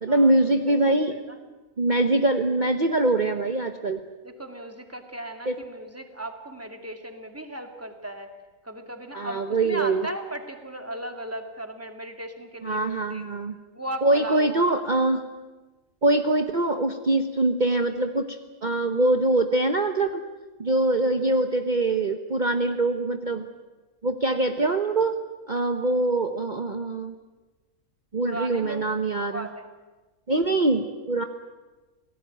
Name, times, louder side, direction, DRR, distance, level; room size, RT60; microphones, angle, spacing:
voice 1, 0.0-1.1 1.8-4.0 5.5-5.6 9.1-10.1 12.6-13.6 14.0-15.2 16.0-20.2 20.6-23.5 24.0-25.2 25.5-27.1 28.1-29.5 30.3-31.2, right 2 dB, 35° right, 7 dB, 1.1 m, -23 dB
voice 2, 0.7-1.4 4.2-8.3 8.6-13.2 13.7-14.6 28.2-28.8 29.3-29.6 30.7-30.8, right 1 dB, 10° right, 5 dB, 2.4 m, -37 dB
28.0 x 18.5 x 9.2 m, 1.2 s
omnidirectional pair, 1.5 m